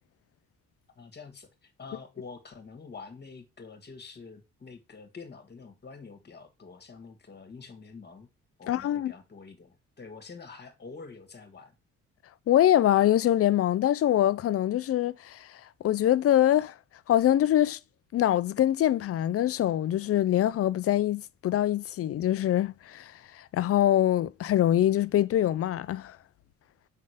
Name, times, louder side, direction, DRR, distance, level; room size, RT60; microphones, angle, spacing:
voice 1, 1.0-8.3 8.6-11.7, left 4 dB, 35° left, 1.7 m, -47 dB
voice 2, 8.7-9.1 12.5-16.8 17.1-17.8 18.1-26.2, left 12 dB, 50° left, 0.5 m, -24 dB
5.5 x 3.8 x 5.0 m
cardioid pair, 90°, 30 cm